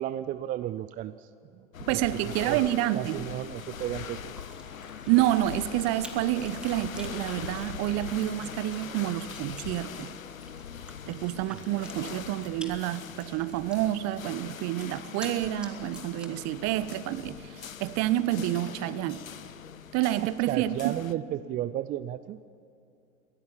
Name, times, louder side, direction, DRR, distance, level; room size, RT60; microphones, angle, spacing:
voice 1, 0.0-2.6 2.9-4.3 20.2-22.4, right 12 dB, 20° right, 14 dB, 0.4 m, -34 dB
sound 1, 1.7-21.1, left 8 dB, 85° left, 0.7 m, -42 dB
voice 2, 1.8-3.2 5.1-10.1 11.1-19.2 19.9-20.9, right 15 dB, 40° right, 15 dB, 0.9 m, -28 dB
Chewing mastication, 3.6-16.5, right 1 dB, ahead, 2.2 m, -50 dB
23.0 x 16.5 x 7.3 m, 2.6 s
figure-of-eight pair, 85°, 39 cm